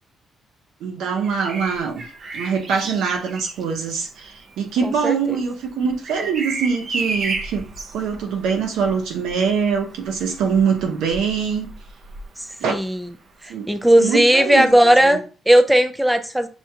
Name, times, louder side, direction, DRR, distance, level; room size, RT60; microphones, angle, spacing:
voice 1, 0.8-2.0 2.3-7.6 7.9-11.7 12.6-12.7 13.5-13.7 14.0-14.7 15.0-15.2, right 6 dB, 85° right, 0.8 m, -23 dB
Bird vocalization bird call bird song, 1.2-13.0 14.7-14.9, right 3 dB, 55° right, 0.6 m, -34 dB
voice 2, 4.8-5.1 12.7-13.0 13.4-16.5, right 1 dB, 5° right, 0.4 m, -16 dB
6.2 x 2.2 x 2.8 m
cardioid pair, 90°, 0 cm